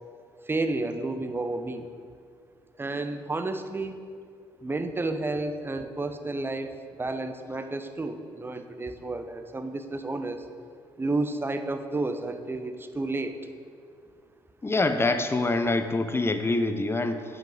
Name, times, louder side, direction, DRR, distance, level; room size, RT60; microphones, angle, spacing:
voice 1, 0.5-1.9 2.8-4.0 4.6-10.5 11.0-13.3, right 2 dB, 15° right, 8 dB, 0.8 m, -31 dB
voice 2, 14.6-17.2, left 2 dB, 20° left, 9 dB, 0.7 m, -25 dB
9.0 x 6.1 x 5.3 m, 2.2 s
figure-of-eight pair, 45°, 12 cm